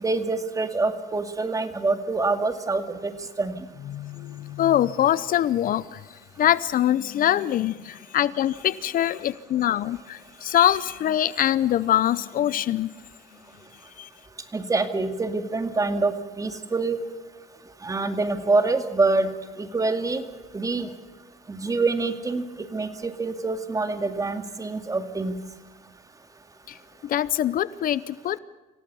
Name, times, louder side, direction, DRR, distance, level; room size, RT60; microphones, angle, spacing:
voice 1, 0.0-3.1 3.4-3.6 14.5-17.0 17.8-19.3 19.6-20.2 20.5-20.9 21.5-22.4 22.7-25.3, right 3 dB, 20° right, 8 dB, 2.2 m, -25 dB
voice 2, 3.9-12.9 14.0-14.1 26.7-28.4, left 11 dB, 55° left, 18 dB, 0.7 m, -24 dB
26.5 x 17.0 x 7.0 m, 1.3 s
cardioid pair, 110°, 17 cm